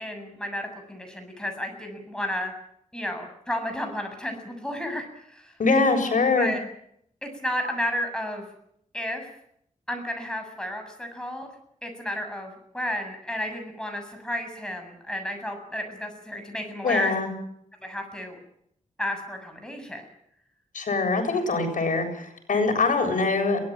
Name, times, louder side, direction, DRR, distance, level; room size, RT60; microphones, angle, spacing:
voice 1, 0.0-2.5 2.9-5.5 6.4-6.6 7.2-8.4 8.9-9.3 9.9-11.5 11.8-17.1 17.8-18.4 19.0-20.1, left 1 dB, 5° left, 4 dB, 7.4 m, -32 dB
voice 2, 5.6-6.5 16.8-17.3 20.7-23.6, left 3 dB, 75° left, 4 dB, 7.6 m, -23 dB
23.5 x 18.5 x 8.9 m, 0.71 s
wide cardioid pair, 140°, 14 cm